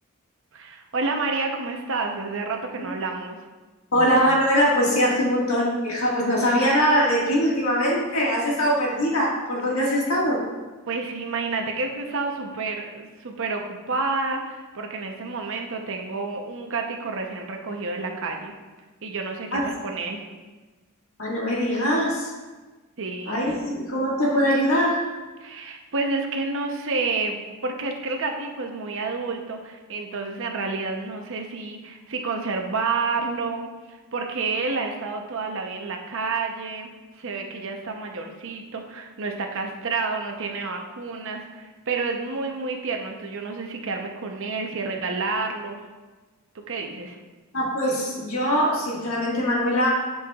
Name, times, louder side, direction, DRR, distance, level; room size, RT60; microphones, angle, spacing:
voice 1, 0.5-3.4 10.9-18.5 19.0-20.2 23.0-23.6 25.4-45.8 46.7-47.2, right 3 dB, 60° right, 2 dB, 0.8 m, -29 dB
voice 2, 3.9-10.4 19.5-19.7 21.2-22.3 23.3-25.1 47.5-49.9, equal, 70° left, -3 dB, 1.8 m, -22 dB
10.5 x 5.6 x 2.4 m, 1.3 s
head